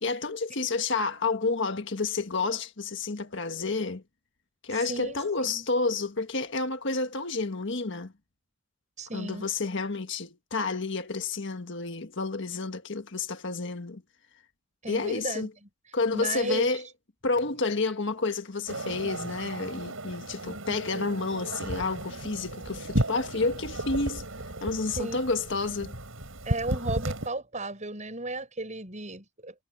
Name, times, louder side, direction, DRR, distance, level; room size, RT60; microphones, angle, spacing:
voice 1, 0.0-4.0 4.6-8.1 9.1-14.0 14.9-15.5 15.9-16.8 17.2-24.2 24.6-25.9, left 3 dB, 60° left, 1.6 m, -30 dB
voice 2, 4.9-5.7 9.0-9.5 14.8-15.5 16.1-16.7 25.0-25.2 26.4-29.5, right 2 dB, 35° right, 7.7 m, -34 dB
sound 1, 18.7-27.3, right 1 dB, 75° right, 6.5 m, -34 dB
head